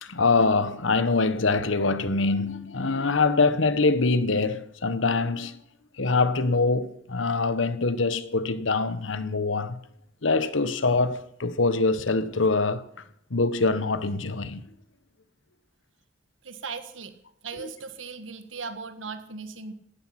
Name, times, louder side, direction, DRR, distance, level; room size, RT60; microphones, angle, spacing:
voice 1, 0.0-5.6 6.0-9.8 10.2-12.8 13.3-14.7, left 3 dB, 90° left, 1.1 m, -24 dB
voice 2, 16.4-19.7, right 4 dB, 90° right, 1.6 m, -38 dB
17.5 x 13.5 x 5.9 m
head